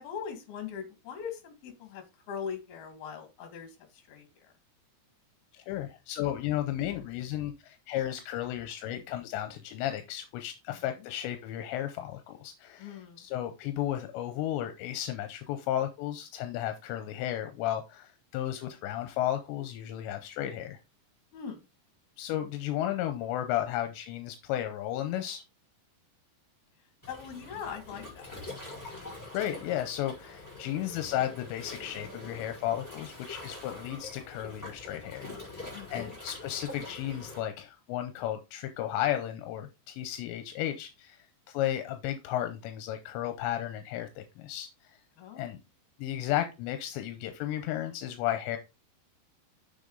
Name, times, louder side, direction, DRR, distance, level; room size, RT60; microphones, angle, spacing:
voice 1, 0.0-4.5 10.7-10.8 12.8-13.2 21.3-21.6 27.1-28.4 35.7-35.9 45.2-45.5, left 7 dB, 65° left, 6 dB, 3.6 m, -41 dB
voice 2, 5.5-20.8 22.2-25.4 29.3-35.6 35.9-45.0 45.3-45.6 46.0-48.6, left 12 dB, 85° left, 7 dB, 3.0 m, -34 dB
Waves surf, 27.0-37.4, left 2 dB, 5° left, 4.1 m, -44 dB
7.0 x 6.9 x 3.9 m, 0.26 s
omnidirectional pair, 5.0 m